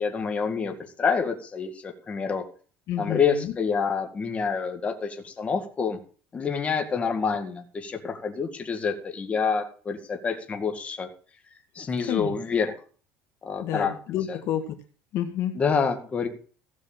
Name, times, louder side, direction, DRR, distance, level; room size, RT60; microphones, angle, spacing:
voice 1, 0.0-2.5 3.0-6.0 6.3-11.1 11.8-12.7 13.4-13.9 14.3-14.4 15.5-16.3, left 5 dB, 20° left, 4 dB, 2.0 m, -27 dB
voice 2, 2.9-3.5 12.1-12.3 13.6-14.7 15.1-15.5, left 11 dB, 50° left, 6 dB, 1.7 m, -29 dB
15.5 x 6.3 x 7.4 m, 0.40 s
cardioid pair, 155°, 6 cm